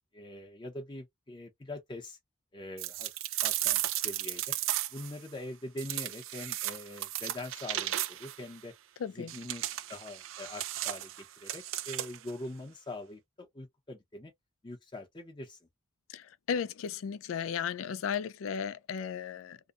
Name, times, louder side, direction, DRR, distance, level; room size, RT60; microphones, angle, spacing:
voice 1, 0.1-2.2 2.5-3.1 3.4-4.5 4.9-8.7 9.1-9.6 9.9-14.3 14.6-15.6, left 1 dB, 25° left, 0.7 m, -43 dB
sound 1, 2.8-5.1 5.8-8.4 9.3-12.3, right 14 dB, 85° right, 0.4 m, -35 dB
voice 2, 9.0-9.3 16.1-19.6, left 7 dB, 90° left, 0.4 m, -35 dB
2.7 x 2.1 x 2.4 m
head